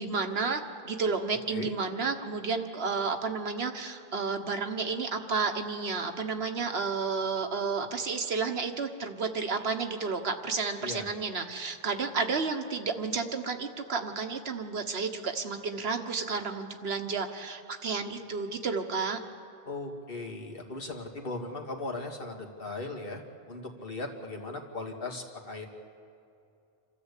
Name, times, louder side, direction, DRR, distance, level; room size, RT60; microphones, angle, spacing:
voice 1, 0.0-19.2, right 4 dB, 75° right, 6 dB, 1.5 m, -31 dB
voice 2, 19.7-23.2 23.5-25.7, left 2 dB, 60° left, 1 dB, 2.2 m, -38 dB
27.5 x 13.0 x 8.3 m, 2.5 s
omnidirectional pair, 1.1 m